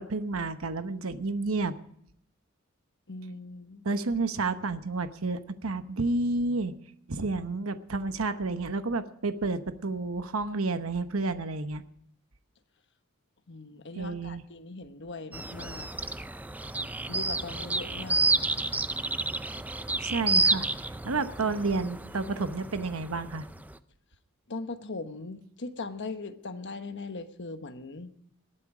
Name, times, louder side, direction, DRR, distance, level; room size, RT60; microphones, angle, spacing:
voice 1, 0.0-1.7 3.8-6.7 7.1-11.8 13.9-14.4 20.0-20.7 21.0-23.5, right 3 dB, 65° right, 10 dB, 0.9 m, -30 dB
voice 2, 3.1-3.8 13.5-15.9 17.1-18.3 24.5-28.1, left 3 dB, 55° left, 8 dB, 1.2 m, -39 dB
sound 1, 15.3-23.7, right 2 dB, 5° right, 0.5 m, -30 dB
20.0 x 9.0 x 4.9 m, 0.71 s
head